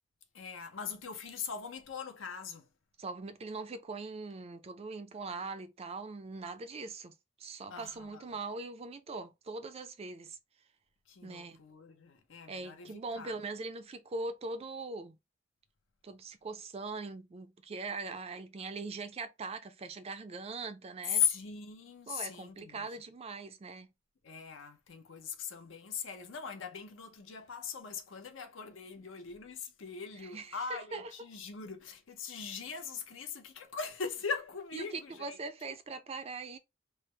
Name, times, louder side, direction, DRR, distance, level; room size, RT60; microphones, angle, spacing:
voice 1, 0.3-2.7 7.7-8.2 11.1-13.4 21.1-22.9 24.2-35.4, left 7 dB, 75° left, 0.7 m, -39 dB
voice 2, 3.0-7.1 7.4-10.4 11.2-11.6 12.5-15.2 16.0-21.2 22.1-23.9 30.2-31.1 34.7-36.6, right 3 dB, 30° right, 0.4 m, -41 dB
3.3 x 2.0 x 3.1 m
head